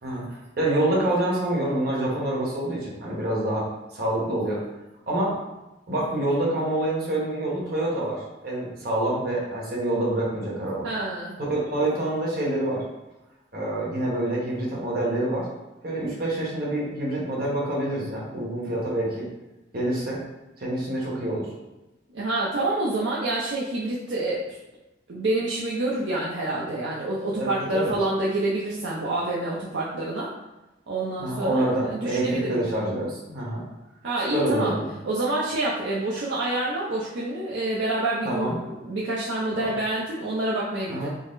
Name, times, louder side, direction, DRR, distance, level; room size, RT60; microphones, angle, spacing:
voice 1, 0.0-3.6 3.9-4.6 5.1-5.4 5.9-10.9 11.4-12.8 13.5-15.5 15.8-19.2 19.7-20.2 20.6-21.5 27.4-28.0 31.2-33.6 34.3-34.9 38.2-38.5 40.9-41.1, right 1 dB, 55° right, -4 dB, 1.1 m, -26 dB
voice 2, 10.8-11.4 22.1-24.4 25.1-30.3 30.9-32.6 34.0-34.7 35.1-41.1, right 2 dB, 70° right, -5 dB, 0.6 m, -27 dB
3.9 x 2.0 x 3.9 m, 1.0 s
head